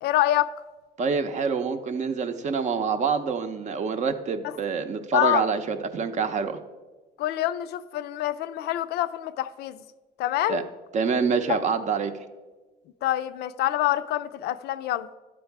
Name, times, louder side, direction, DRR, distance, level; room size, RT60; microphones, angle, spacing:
voice 1, 0.0-0.5 4.4-4.5 5.1-5.4 7.2-9.8 10.2-10.6 13.0-15.1, left 13 dB, 75° left, 12 dB, 0.4 m, -26 dB
voice 2, 1.0-6.6 10.5-10.6 10.9-12.2, right 5 dB, 45° right, 9 dB, 0.6 m, -26 dB
11.5 x 4.6 x 4.6 m, 1.3 s
cardioid pair, 110°, 17 cm